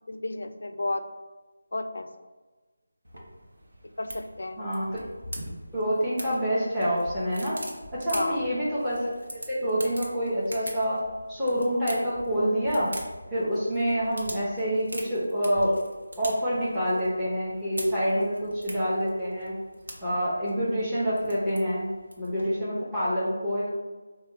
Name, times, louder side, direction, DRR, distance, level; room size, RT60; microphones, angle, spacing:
voice 1, 0.1-1.1 1.7-2.1 3.8-4.8 8.1-8.5 18.1-18.3, left 2 dB, 65° left, 8 dB, 0.3 m, -32 dB
sound 1, 3.0-22.5, right 1 dB, 75° right, 0.8 m, -43 dB
voice 2, 4.6-5.0 5.7-7.6 7.9-12.9 13.3-15.8 16.2-19.5 20.0-21.9 22.2-23.7, equal, 5° right, -12 dB, 0.8 m, -27 dB
4.2 x 2.2 x 3.1 m, 1.3 s
figure-of-eight pair, 160°, 0 cm